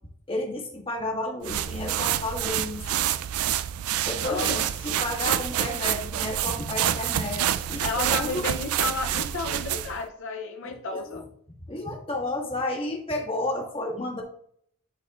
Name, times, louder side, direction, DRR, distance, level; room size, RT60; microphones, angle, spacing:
voice 1, 0.3-2.8 4.0-8.5 10.6-11.2 11.7-14.2, left 1 dB, 25° left, 0 dB, 1.4 m, -32 dB
sound 1, 1.4-10.0, right 11 dB, 70° right, 0.4 m, -28 dB
voice 2, 4.2-4.6 7.8-11.2, left 3 dB, 60° left, 3 dB, 0.6 m, -32 dB
11.0 x 4.1 x 2.4 m, 0.66 s
head